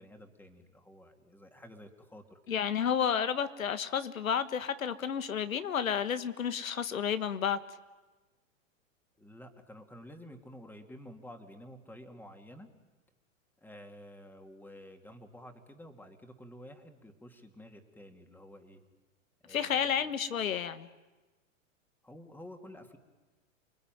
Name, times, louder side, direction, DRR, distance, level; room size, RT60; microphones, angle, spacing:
voice 1, 0.0-2.4 9.2-12.7 13.6-18.8 19.4-20.0 22.0-23.0, equal, 5° left, 2.8 m, -51 dB
voice 2, 2.5-7.6 19.5-20.9, left 8 dB, 90° left, 1.6 m, -31 dB
30.0 x 21.0 x 9.3 m
hypercardioid pair, 120°, 40 cm